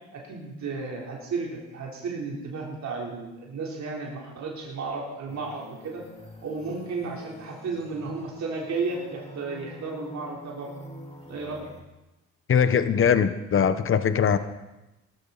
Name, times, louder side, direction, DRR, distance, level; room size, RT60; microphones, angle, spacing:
voice 1, 0.1-6.0 6.4-10.7 11.3-11.7, right 4 dB, 65° right, -2 dB, 3.8 m, -33 dB
sound 1, 5.3-11.8, left 1 dB, 20° left, 2.5 m, -46 dB
voice 2, 12.5-14.4, left 7 dB, 45° left, 12 dB, 1.1 m, -21 dB
19.0 x 13.0 x 4.1 m, 0.99 s
cardioid pair, 90°, 30 cm